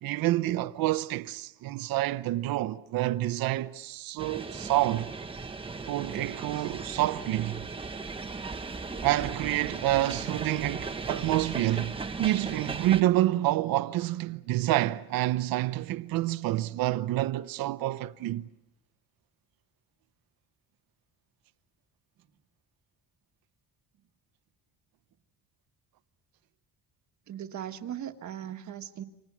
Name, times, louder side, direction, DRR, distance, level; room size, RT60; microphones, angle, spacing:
voice 1, 0.0-5.1 5.9-7.7 9.0-18.5, right 15 dB, 90° right, 0.9 m, -28 dB
sound 1, 4.2-13.0, right 4 dB, 15° right, 1.1 m, -37 dB
voice 2, 27.3-29.0, right 10 dB, 55° right, 1.6 m, -38 dB
29.0 x 26.5 x 6.1 m
cardioid pair, 150°, 34 cm